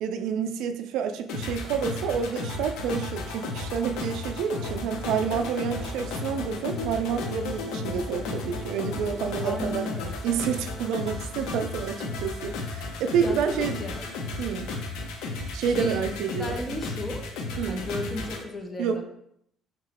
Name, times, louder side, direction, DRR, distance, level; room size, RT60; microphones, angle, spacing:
voice 1, 0.0-9.9 10.2-13.8 14.4-14.7 15.5-16.8 17.6-17.8 18.8-19.0, right 7 dB, 70° right, 8 dB, 0.3 m, -29 dB
sound 1, 1.3-18.4, left 3 dB, 80° left, 0.6 m, -34 dB
voice 2, 9.4-10.2 13.2-14.0 15.7-17.3 17.7-19.0, left 1 dB, 15° left, 3 dB, 0.5 m, -35 dB
3.0 x 2.9 x 4.1 m, 0.71 s
cardioid pair, 170°, 0 cm